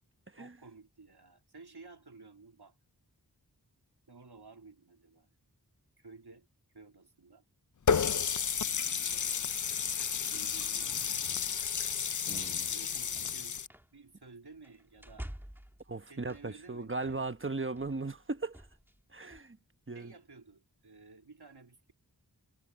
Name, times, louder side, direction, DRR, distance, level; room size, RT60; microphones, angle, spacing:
voice 1, 0.4-2.8 4.1-5.3 6.0-6.5 6.7-7.4 8.5-9.4 10.3-11.2 12.7-13.6 13.9-15.3 16.1-17.3 19.9-21.9, right 4 dB, 75° right, 3.3 m, -54 dB
Water tap faucet, 7.9-13.7, left 7 dB, 50° left, 0.5 m, -32 dB
sound 1, 8.3-19.4, equal, 5° right, 1.7 m, -53 dB
voice 2, 12.3-12.7 15.9-18.6 19.1-19.6 19.9-20.1, right 3 dB, 30° right, 1.1 m, -37 dB
wide cardioid pair, 60°, 39 cm